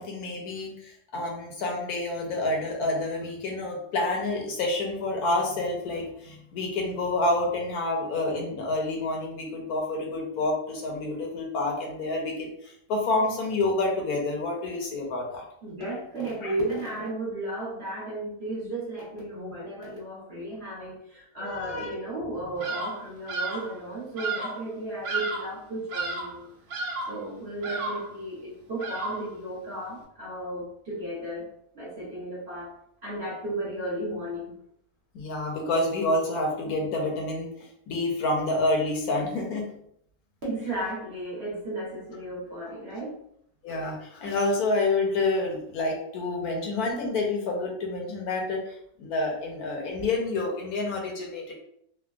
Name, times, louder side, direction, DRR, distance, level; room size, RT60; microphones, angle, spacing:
voice 1, 0.0-15.4 16.4-16.5 21.4-22.0 35.1-37.5 37.9-39.7 43.6-48.6 49.0-51.5, left 2 dB, 75° left, -1 dB, 1.2 m, -28 dB
voice 2, 15.6-26.5 27.1-32.7 33.0-34.5 40.4-43.2, right 1 dB, 45° right, -6 dB, 1.1 m, -34 dB
Bird vocalization bird call bird song, 22.6-23.0 23.3-23.7 24.2-24.6 25.0-25.6 25.9-26.4 26.7-27.2 27.6-28.1 28.8-29.3, right 3 dB, 75° right, 1.1 m, -32 dB
3.4 x 2.2 x 2.3 m, 0.70 s
omnidirectional pair, 1.6 m